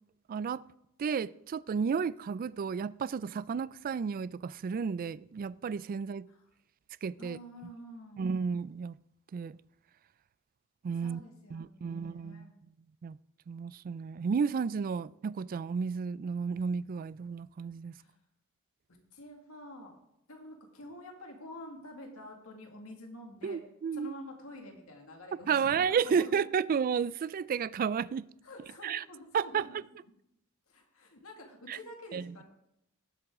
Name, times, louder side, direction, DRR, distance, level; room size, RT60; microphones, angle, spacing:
voice 1, 0.3-0.6 1.0-6.3 7.0-7.4 8.2-8.9 9.3-9.6 10.8-11.2 11.5-12.5 13.0-13.2 13.5-18.0 23.4-24.1 25.5-28.3 28.8-29.0 29.3-29.7 31.7-31.8 32.1-32.4, right 6 dB, 40° right, 0.3 m, -32 dB
voice 2, 7.2-8.3 11.0-12.5 18.0-18.1 19.1-20.0 20.3-23.6 23.9-26.5 28.4-29.8 30.0-30.1 30.7-32.4, left 1 dB, 75° left, 2.1 m, -48 dB
18.0 x 7.8 x 3.7 m
head